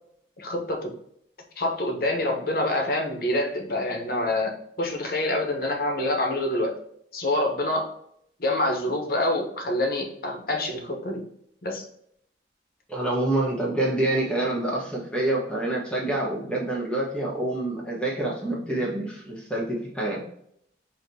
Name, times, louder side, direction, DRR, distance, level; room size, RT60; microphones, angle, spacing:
voice 1, 0.4-0.9 1.6-6.8 7.1-7.9 8.4-11.2 11.6-11.8, left 1 dB, 55° left, 2 dB, 0.9 m, -26 dB
voice 2, 12.9-20.2, right 1 dB, 5° left, -4 dB, 1.1 m, -27 dB
5.0 x 2.8 x 2.7 m, 0.70 s
head